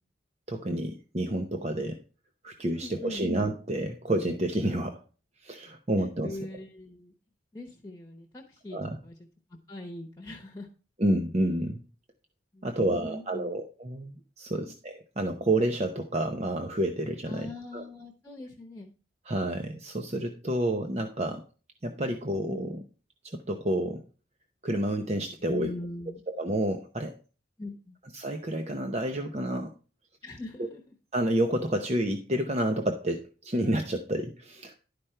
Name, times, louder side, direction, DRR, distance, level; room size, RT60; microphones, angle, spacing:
voice 1, 0.5-2.0 2.4-5.0 5.4-6.4 8.7-9.0 11.0-11.8 12.6-17.8 19.3-21.4 21.8-22.8 23.2-24.0 24.6-25.7 26.3-27.2 28.1-29.7 30.6-30.7 31.1-34.8, right 1 dB, 35° right, 5 dB, 0.8 m, -29 dB
voice 2, 2.7-3.2 6.0-7.1 7.5-9.1 9.7-10.7 12.5-13.6 14.5-14.7 17.2-18.9 25.5-26.2 27.6-28.0 30.2-30.9, left 2 dB, 15° left, 2 dB, 1.1 m, -41 dB
11.5 x 5.2 x 4.4 m, 0.35 s
head